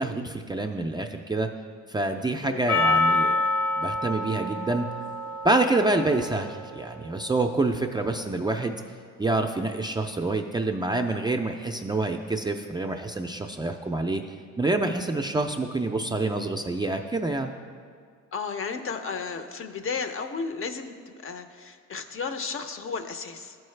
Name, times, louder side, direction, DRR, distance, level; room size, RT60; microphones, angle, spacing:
voice 1, 0.0-1.5 1.9-3.5 3.8-4.9 5.4-8.8 9.2-14.2 14.6-17.5, right 2 dB, 15° right, 3 dB, 0.3 m, -27 dB
Percussion, 2.7-7.0, left 2 dB, 75° left, 1.3 m, -27 dB
voice 2, 18.3-23.6, left 5 dB, 45° left, 8 dB, 0.6 m, -33 dB
12.5 x 4.6 x 3.2 m, 2.1 s
cardioid pair, 90°, 30 cm